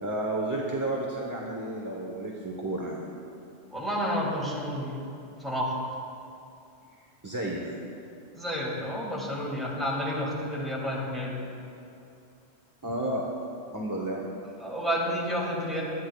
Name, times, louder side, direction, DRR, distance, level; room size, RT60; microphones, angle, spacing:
voice 1, 0.0-3.0 7.2-7.7 12.8-13.3 13.7-14.2, right 1 dB, 20° right, -2 dB, 0.9 m, -31 dB
voice 2, 3.7-5.0 5.4-5.9 8.3-11.4 14.6-15.8, equal, ahead, -5 dB, 2.4 m, -30 dB
18.5 x 12.0 x 2.3 m, 2.6 s
omnidirectional pair, 1.2 m